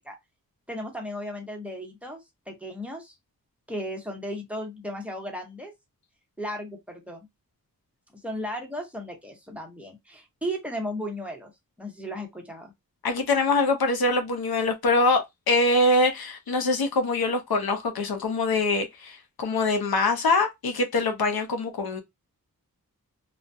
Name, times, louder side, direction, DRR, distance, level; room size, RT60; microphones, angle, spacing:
voice 1, 0.7-3.1 3.7-5.7 6.4-7.3 8.2-11.5 11.8-12.7, equal, 5° right, 0.9 m, -35 dB
voice 2, 13.0-22.0, left 2 dB, 80° left, 0.7 m, -24 dB
2.3 x 2.2 x 2.6 m
wide cardioid pair, 80°, 36 cm